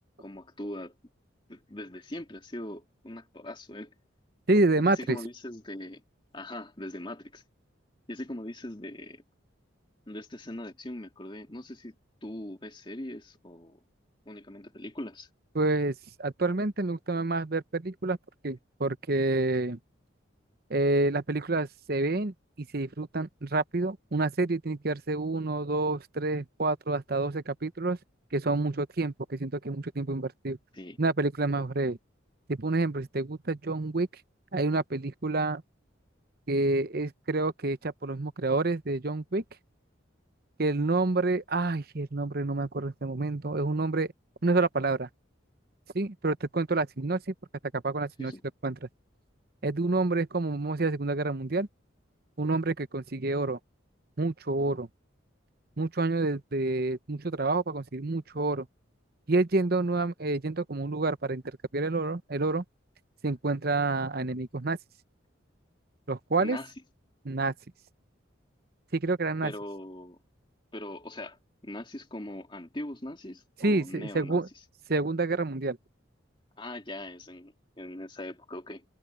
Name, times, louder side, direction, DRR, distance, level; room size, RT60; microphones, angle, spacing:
voice 1, 0.2-0.9 1.5-3.9 5.0-6.0 6.3-7.4 8.1-9.2 10.1-11.9 12.2-13.8 14.3-15.3 30.7-31.0 48.2-48.4 66.4-66.7 69.4-70.2 70.7-74.4 76.6-78.8, left 1 dB, 25° left, 2.5 m, -41 dB
voice 2, 4.5-5.2 15.5-18.2 18.4-19.8 20.7-22.3 22.7-28.0 28.3-30.6 31.0-32.0 32.5-34.1 34.5-35.6 36.5-39.4 40.6-44.1 44.4-45.1 45.9-47.2 47.7-48.3 48.6-48.8 49.6-51.7 52.4-53.6 54.2-54.9 55.8-58.7 59.3-61.4 61.7-62.6 63.2-64.8 66.1-66.6 67.3-67.5 68.9-69.5 73.6-74.5 74.9-75.8, right 2 dB, 50° right, 0.9 m, -28 dB
head